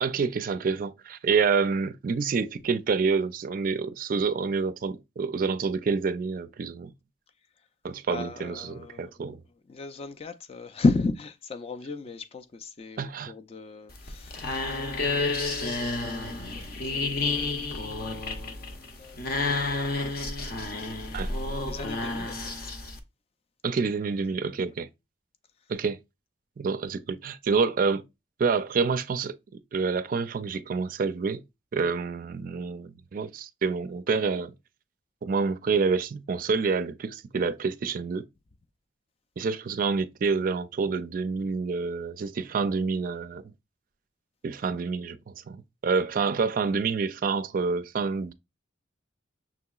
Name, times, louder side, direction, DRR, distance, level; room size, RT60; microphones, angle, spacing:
voice 1, 0.0-6.9 7.8-9.4 13.0-13.3 21.1-21.3 23.6-24.9 25.7-26.0 26.6-28.0 28.4-29.4 29.7-31.4 31.7-34.5 35.2-38.3 39.4-43.4 44.4-48.3, right 5 dB, 45° right, 0.3 m, -28 dB
voice 2, 8.1-9.1 9.7-14.9 15.4-19.4 21.6-22.7, left 3 dB, 30° left, 0.3 m, -34 dB
sound 1, 13.9-23.0, left 3 dB, 50° left, 0.7 m, -30 dB
5.9 x 2.8 x 2.3 m
head